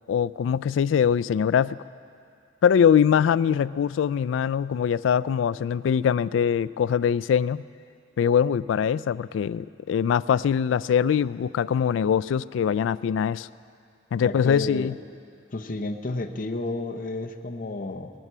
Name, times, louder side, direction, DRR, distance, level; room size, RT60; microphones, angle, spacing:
voice 1, 0.1-1.8 2.6-7.6 8.2-13.5 14.1-15.0, left 8 dB, 85° left, 18 dB, 0.3 m, -22 dB
voice 2, 14.2-14.9 15.5-18.1, left 2 dB, 50° left, 4 dB, 0.8 m, -31 dB
19.5 x 11.0 x 5.5 m, 2.4 s
head